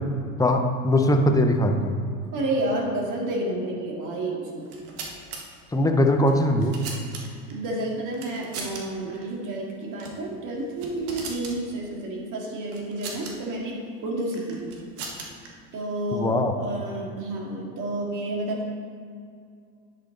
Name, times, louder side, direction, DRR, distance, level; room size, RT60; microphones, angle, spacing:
voice 1, 0.4-2.0 5.7-6.7 16.1-16.5, left 1 dB, 10° left, 5 dB, 0.7 m, -21 dB
voice 2, 2.3-4.7 6.5-6.6 7.5-14.7 15.7-18.7, right 1 dB, 45° right, -2 dB, 2.2 m, -30 dB
sound 1, 4.6-5.4 6.3-7.5 8.1-8.8 9.1-9.2 9.9-10.2 10.6-11.6 12.7-13.3 14.3-15.5, right 4 dB, 80° right, 1.6 m, -38 dB
10.0 x 5.8 x 3.9 m, 2.3 s
hypercardioid pair, 100°, 44 cm